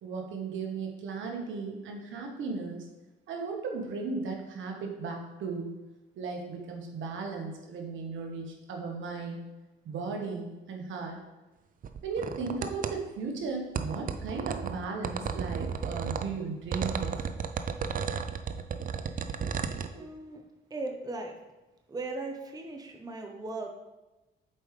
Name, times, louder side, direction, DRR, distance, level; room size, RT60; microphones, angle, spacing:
voice 1, 0.0-2.8 3.3-5.7 6.2-9.4 9.8-11.2 12.0-17.3 19.9-20.2, right 4 dB, 75° right, 1 dB, 1.3 m, -36 dB
sound 1, 11.8-13.0 13.8-16.3 16.7-19.9, right 6 dB, 45° right, 0.5 m, -33 dB
voice 2, 19.9-20.4 20.7-21.4 21.9-23.7, right 2 dB, 20° right, 3 dB, 0.8 m, -38 dB
7.6 x 4.9 x 3.3 m, 1.1 s
cardioid pair, 90°, 20 cm